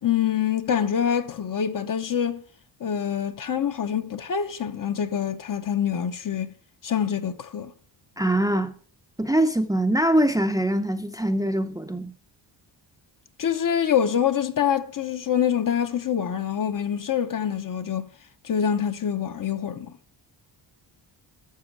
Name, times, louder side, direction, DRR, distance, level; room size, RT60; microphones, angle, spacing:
voice 1, 0.0-2.4 2.8-6.5 6.8-7.7 13.4-18.1 18.4-19.9, left 8 dB, 45° left, 0.9 m, -25 dB
voice 2, 8.2-8.8 9.2-12.1, right 1 dB, 10° right, 0.7 m, -23 dB
12.5 x 7.1 x 4.7 m
cardioid pair, 125°, 46 cm